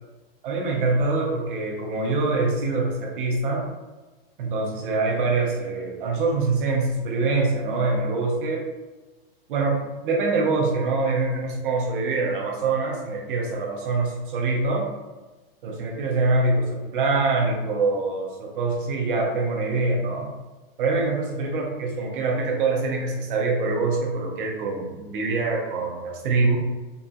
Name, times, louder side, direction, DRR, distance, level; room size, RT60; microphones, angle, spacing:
voice 1, 0.4-3.6 4.4-8.6 9.5-14.9 15.6-20.3 20.8-26.6, right 3 dB, 60° right, -1 dB, 1.0 m, -24 dB
4.0 x 2.5 x 2.3 m, 1.2 s
hypercardioid pair, 145°, 29 cm